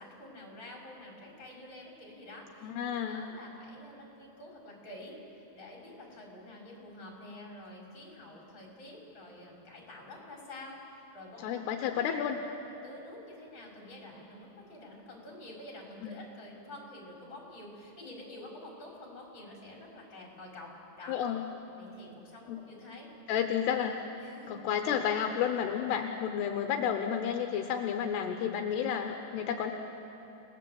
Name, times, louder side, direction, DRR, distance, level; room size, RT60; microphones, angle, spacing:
voice 1, 0.0-11.6 12.0-12.2 12.8-21.2 21.8-23.1 24.2-24.6, left 1 dB, 25° left, -2 dB, 5.4 m, -48 dB
voice 2, 2.6-3.2 11.4-12.4 16.0-16.2 21.1-21.4 22.5-22.6 23.3-24.0 24.5-29.7, left 8 dB, 80° left, 5 dB, 2.9 m, -31 dB
29.0 x 19.5 x 7.7 m, 3.0 s
omnidirectional pair, 4.9 m